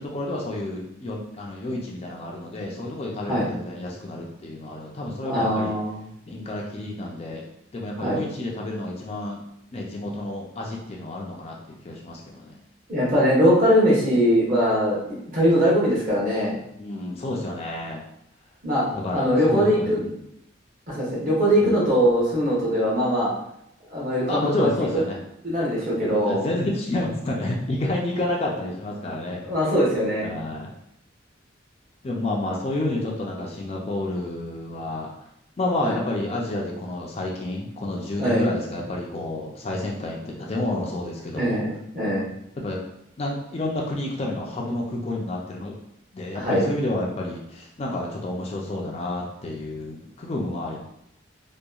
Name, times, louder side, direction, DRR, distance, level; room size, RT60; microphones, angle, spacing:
voice 1, 0.0-5.7 6.3-7.5 7.7-9.4 9.7-12.6 16.8-18.0 18.9-20.2 21.6-21.7 24.3-25.2 26.2-29.5 30.2-30.7 32.0-35.1 35.6-41.6 42.6-42.8 43.2-45.7 46.1-50.8, left 1 dB, 30° left, -1 dB, 0.3 m, -30 dB
voice 2, 5.2-6.0 8.0-8.2 12.9-16.6 18.6-18.8 19.1-20.0 20.9-23.3 23.9-24.7 25.4-26.5 29.5-30.3 35.8-35.9 38.2-38.4 41.4-42.3 46.3-46.6, equal, 45° right, -6 dB, 1.0 m, -21 dB
2.8 x 2.2 x 2.3 m, 0.78 s
head